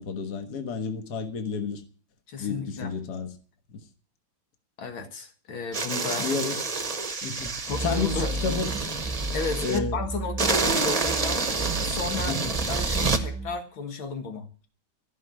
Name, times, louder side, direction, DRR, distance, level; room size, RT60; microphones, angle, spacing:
voice 1, 0.0-1.8 2.4-3.4 3.7-3.8 6.2-6.6 7.2-7.5 7.8-8.7 9.6-10.0 12.3-12.5, left 5 dB, 55° left, 2.0 m, -31 dB
voice 2, 2.3-2.9 4.8-6.3 7.6-8.3 9.3-11.5 11.8-12.4 12.7-14.5, left 4 dB, 90° left, 2.5 m, -33 dB
sound 1, 5.7-9.8 10.4-13.2, right 4 dB, 25° right, 0.8 m, -28 dB
sound 2, 7.7-10.8 11.0-13.6, right 3 dB, 5° right, 1.4 m, -33 dB
14.5 x 6.2 x 9.4 m
omnidirectional pair, 2.1 m